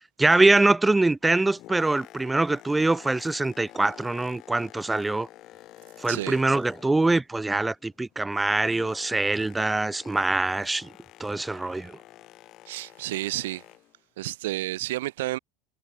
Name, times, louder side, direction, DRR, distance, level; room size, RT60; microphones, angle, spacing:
voice 1, 0.2-5.3 6.0-10.9 11.2-11.9, right 2 dB, 10° right, 0.7 m, -23 dB
Boat Water vehicle, 1.2-7.3 7.5-14.0 14.6-14.8, left 15 dB, 50° left, 5.5 m, -49 dB
voice 2, 6.1-6.4 12.7-13.6 14.2-15.4, right 17 dB, 85° right, 0.6 m, -31 dB
supercardioid pair, 120°, 0 cm